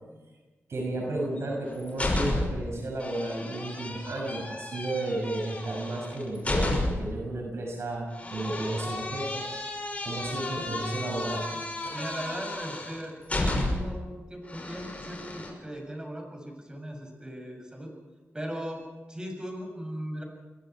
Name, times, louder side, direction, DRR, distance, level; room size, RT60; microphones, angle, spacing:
voice 1, 0.7-9.4 10.0-11.4 11.8-11.9, right 2 dB, 75° right, -1 dB, 6.0 m, -33 dB
sound 1, 1.4-2.7 3.0-7.1 8.1-14.0 14.5-15.5, left 2 dB, 30° left, 6.1 m, -32 dB
voice 2, 11.8-17.9 18.3-18.8 19.1-20.2, equal, 20° right, 2 dB, 6.9 m, -38 dB
27.5 x 22.5 x 4.7 m, 1.2 s
wide cardioid pair, 85°, 5 cm